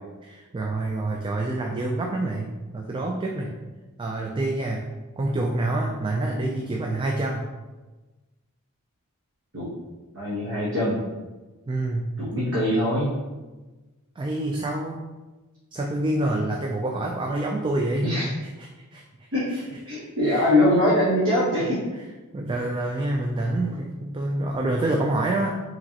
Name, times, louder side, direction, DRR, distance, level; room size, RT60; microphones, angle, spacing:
voice 1, 0.2-3.5 4.0-4.9 5.2-7.4 11.7-12.1 14.2-15.1 15.7-18.1 18.6-19.0 19.5-19.6 19.9-20.0 20.3-20.4 22.3-25.5, right 2 dB, 20° right, 1 dB, 0.3 m, -27 dB
voice 2, 10.1-11.0 12.2-13.1 18.0-18.3 19.3-21.8, left 1 dB, 60° right, -8 dB, 1.1 m, -22 dB
4.9 x 3.1 x 2.8 m, 1.2 s
head